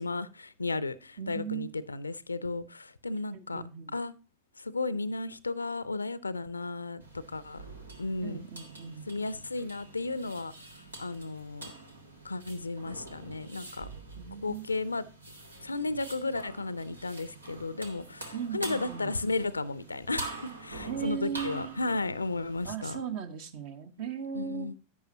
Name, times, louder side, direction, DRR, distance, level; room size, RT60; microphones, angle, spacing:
voice 1, 0.0-3.6 3.9-4.1 4.6-7.0 7.3-7.6 8.0-8.4 9.1-11.7 12.2-13.9 14.4-15.0 15.6-23.0 24.3-24.7, left 3 dB, 80° left, 0.5 m, -34 dB
voice 2, 1.2-1.7 3.3-4.0 8.2-9.1 14.2-14.6 18.3-19.1 20.8-21.8 22.6-24.7, right 7 dB, 50° right, 1.3 m, -37 dB
sound 1, 7.0-22.7, right 2 dB, 80° right, 1.6 m, -45 dB
11.0 x 8.9 x 2.8 m
figure-of-eight pair, 90°, 0 cm